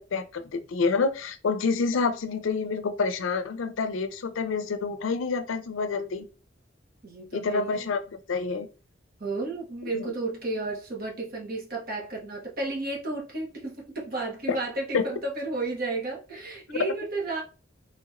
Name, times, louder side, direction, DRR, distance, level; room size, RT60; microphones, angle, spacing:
voice 1, 0.1-6.3 7.3-8.7 9.9-10.1 14.5-14.6 14.9-15.0, left 4 dB, 90° left, 0.5 m, -28 dB
voice 2, 7.0-7.8 9.2-17.4, right 2 dB, 50° right, 1.2 m, -32 dB
3.4 x 2.9 x 2.4 m
head